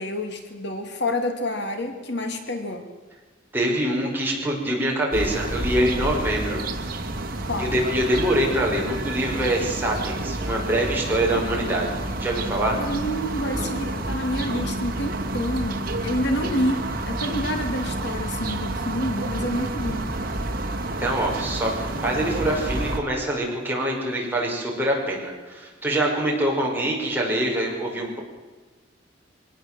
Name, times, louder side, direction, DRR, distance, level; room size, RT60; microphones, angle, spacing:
voice 1, 0.0-2.9 7.4-7.8 12.7-20.1, left 1 dB, 65° left, 5 dB, 2.7 m, -28 dB
voice 2, 3.5-6.6 7.6-12.8 20.8-21.7 22.0-28.2, right 1 dB, 10° right, -2 dB, 6.0 m, -24 dB
sound 1, 5.1-23.0, right 1 dB, 50° right, 2.6 m, -29 dB
24.0 x 19.0 x 7.9 m, 1.3 s
head